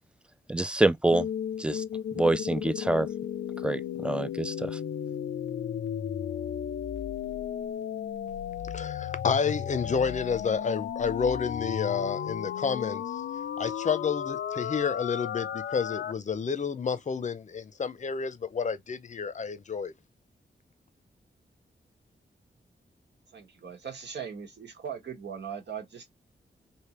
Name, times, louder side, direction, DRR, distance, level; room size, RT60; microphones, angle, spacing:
voice 1, 0.5-1.3 1.6-1.8 2.1-3.1 3.6-4.8, right 2 dB, 5° right, 0.3 m, -26 dB
sound 1, 1.1-16.1, left 9 dB, 90° left, 0.4 m, -34 dB
voice 2, 8.7-13.0 13.6-19.9, left 6 dB, 45° left, 0.6 m, -30 dB
voice 3, 23.3-26.0, right 7 dB, 75° right, 1.4 m, -39 dB
3.3 x 2.8 x 3.0 m
wide cardioid pair, 100°, 18 cm